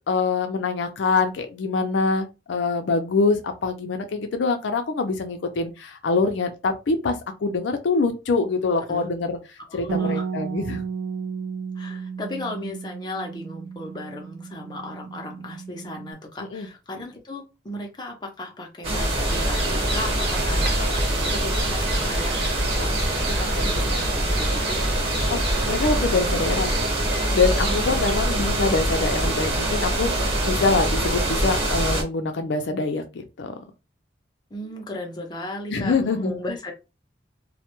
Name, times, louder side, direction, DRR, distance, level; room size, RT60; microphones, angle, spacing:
voice 1, 0.1-9.4 9.7-10.8 16.5-16.7 25.3-25.4 25.7-26.8 27.3-33.6 35.7-36.3, left 4 dB, 75° left, 0.4 m, -24 dB
voice 2, 8.8-9.1 9.7-10.3 11.8-24.8 27.6-27.9 28.2-28.5 34.5-36.7, left 1 dB, 25° left, 0.5 m, -36 dB
Bass guitar, 9.9-16.1, right 6 dB, 80° right, 0.3 m, -33 dB
sound 1, 18.8-32.0, right 1 dB, 35° right, 1.0 m, -24 dB
sound 2, 19.3-28.1, right 2 dB, 60° right, 0.8 m, -33 dB
2.1 x 2.1 x 2.9 m
head